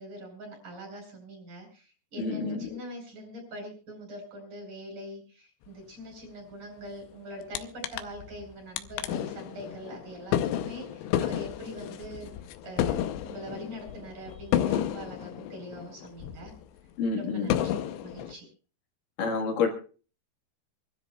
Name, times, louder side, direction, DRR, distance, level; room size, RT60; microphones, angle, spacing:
voice 1, 0.0-12.3 12.6-16.5 17.2-17.8 18.0-18.5, equal, 50° right, 1 dB, 7.0 m, -43 dB
voice 2, 2.2-2.8 17.0-17.5 19.2-19.7, left 4 dB, 60° left, 4 dB, 2.9 m, -28 dB
sound 1, 7.6-7.7 7.8-8.4 8.8-16.6 17.0-17.1 17.5-18.3, left 11 dB, 85° left, 3.0 m, -31 dB
28.0 x 13.0 x 2.3 m, 0.37 s
omnidirectional pair, 4.9 m